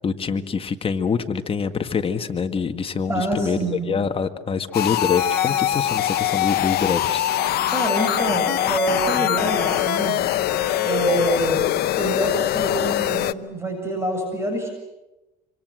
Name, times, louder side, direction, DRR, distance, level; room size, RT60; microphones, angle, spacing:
voice 1, 0.0-7.3, left 6 dB, 35° left, 7 dB, 1.8 m, -25 dB
voice 2, 3.1-3.9 7.7-10.2 10.8-11.7 12.0-14.7, right 1 dB, 15° right, 4 dB, 7.2 m, -26 dB
sound 1, 4.7-13.3, left 14 dB, 70° left, 0.8 m, -23 dB
Trumpet, 4.7-13.4, left 1 dB, 10° left, 6.2 m, -35 dB
26.5 x 26.5 x 7.9 m, 1.0 s
cardioid pair, 110°, 17 cm